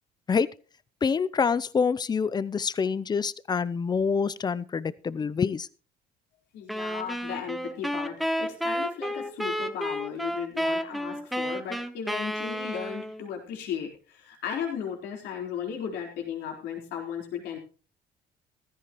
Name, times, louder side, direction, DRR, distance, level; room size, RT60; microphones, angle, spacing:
voice 1, 1.0-5.7, left 5 dB, 25° left, 18 dB, 0.6 m, -26 dB
voice 2, 6.5-17.6, left 8 dB, 85° left, 1 dB, 4.2 m, -36 dB
sound 1, 6.7-13.3, equal, ahead, 1.0 m, -31 dB
15.5 x 13.5 x 3.1 m, 0.37 s
cardioid pair, 110°, 17 cm